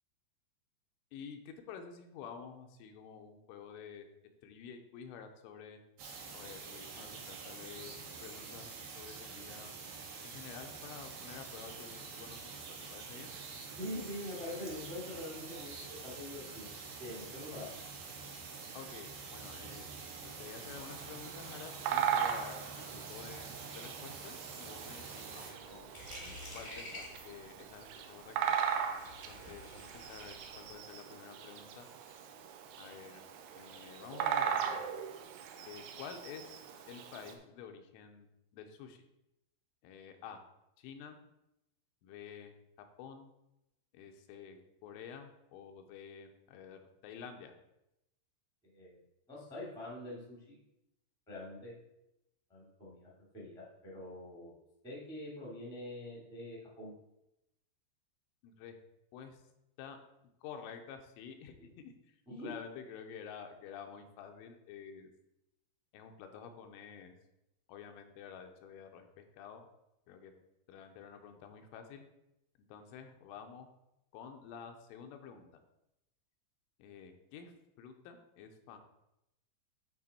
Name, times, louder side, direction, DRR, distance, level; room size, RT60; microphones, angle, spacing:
voice 1, 1.1-4.1 4.4-5.8 6.3-7.9 8.2-9.7 10.2-12.6 12.9-13.3 18.7-19.9 20.2-25.9 26.5-28.6 29.3-31.9 32.8-33.2 33.6-34.8 35.7-36.6 36.9-38.3 38.5-39.0 39.8-40.4 40.8-41.2 42.0-42.6 43.0-43.3 43.9-47.5 58.4-58.8 59.1-59.4 59.8-60.0 60.4-62.2 62.4-65.1 65.9-67.1 67.7-69.7 70.1-70.3 70.7-72.0 72.7-73.7 74.1-75.5 76.8-78.8, left 7 dB, 85° left, 5 dB, 3.3 m, -50 dB
sound 1, 6.0-25.5, right 5 dB, 65° right, 2.9 m, -47 dB
voice 2, 13.8-16.7 17.0-17.7 48.6-49.0 49.3-50.5 51.3-51.7 52.5-54.5 54.8-56.9 61.6-61.7 62.2-62.5, left 1 dB, 5° left, -5 dB, 0.5 m, -44 dB
Bird vocalization bird call bird song, 20.8-37.3, right 8 dB, 80° right, 2.5 m, -39 dB
sound 2, 25.6-30.7, left 1 dB, 25° left, 0.9 m, -50 dB
11.0 x 3.8 x 4.2 m, 0.88 s
omnidirectional pair, 5.6 m